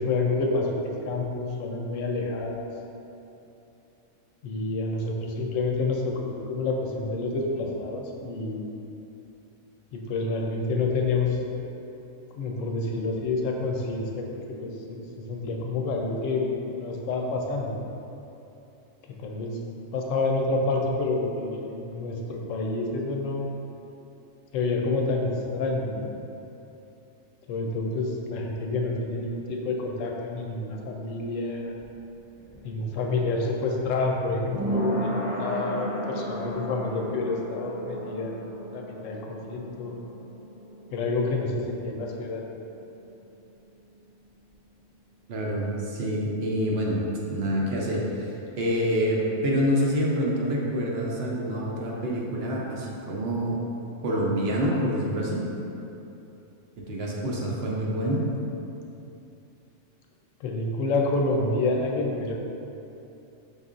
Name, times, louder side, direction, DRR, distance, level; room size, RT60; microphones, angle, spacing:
voice 1, 0.0-2.7 4.4-6.1 6.5-8.6 9.9-11.7 12.4-17.7 19.2-19.6 19.9-23.5 24.5-26.1 27.5-31.7 32.6-39.9 40.9-42.4 60.4-62.3, left 3 dB, 85° left, 0 dB, 1.0 m, -28 dB
sound 1, 31.8-43.0 43.2-43.3, right 1 dB, 5° right, 0.7 m, -35 dB
voice 2, 45.3-47.0 47.3-53.6 54.0-55.4 56.9-58.2, equal, 60° right, -3 dB, 0.8 m, -27 dB
5.4 x 4.0 x 2.4 m, 2.9 s
omnidirectional pair, 1.3 m